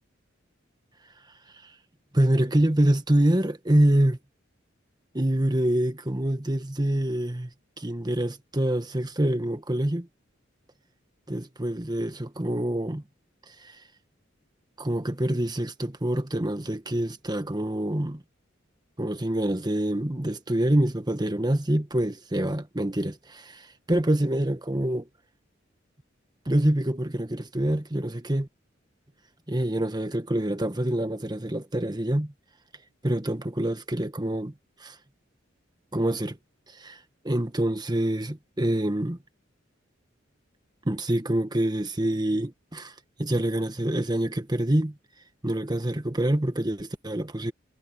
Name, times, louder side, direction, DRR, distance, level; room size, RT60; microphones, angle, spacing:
voice 1, 2.1-4.2 5.1-7.5 7.8-10.1 11.3-13.0 13.5-13.8 14.8-18.2 19.0-25.1 26.4-28.5 29.5-32.3 33.0-34.5 34.8-35.0 35.9-36.4 36.7-39.2 40.8-42.9 43.2-45.0 45.4-47.5, right 1 dB, 20° right, 1.5 m, -26 dB
head